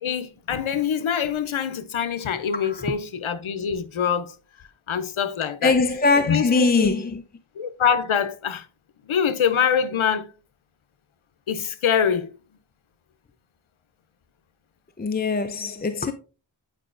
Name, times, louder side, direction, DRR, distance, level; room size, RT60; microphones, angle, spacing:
voice 1, 0.0-4.3 4.9-5.7 6.3-6.9 7.6-8.7 9.1-10.3 11.5-12.3, left 7 dB, 85° left, 0.7 m, -24 dB
voice 2, 2.6-2.9 5.6-7.2 15.0-16.1, left 4 dB, 20° left, 0.4 m, -22 dB
8.9 x 4.8 x 2.4 m
wide cardioid pair, 45°, 47 cm